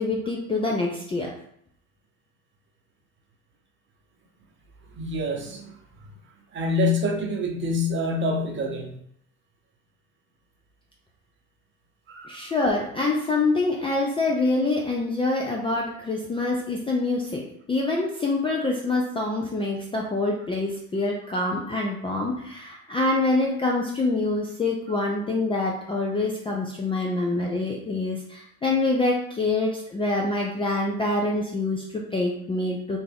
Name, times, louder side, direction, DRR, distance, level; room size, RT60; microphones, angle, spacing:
voice 1, 0.0-1.3 12.3-33.0, left 2 dB, 15° left, -1 dB, 0.4 m, -26 dB
voice 2, 5.0-5.7 6.5-9.0 12.2-12.5, left 2 dB, 30° right, 2 dB, 0.8 m, -26 dB
3.4 x 2.5 x 3.4 m, 0.69 s
hypercardioid pair, 80°, 39 cm